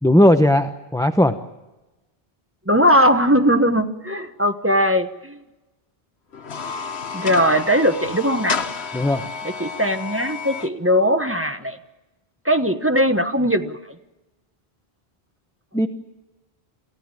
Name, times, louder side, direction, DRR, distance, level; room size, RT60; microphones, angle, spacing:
voice 1, 0.0-1.3 8.9-9.3 15.7-15.9, left 1 dB, 5° left, 8 dB, 0.8 m, -17 dB
voice 2, 2.7-5.4 7.1-8.6 9.4-11.8 12.4-13.8, equal, 15° right, 7 dB, 1.1 m, -19 dB
sound 1, 6.3-10.7, left 5 dB, 90° left, 1.4 m, -31 dB
28.0 x 15.5 x 9.0 m, 1.1 s
omnidirectional pair, 1.0 m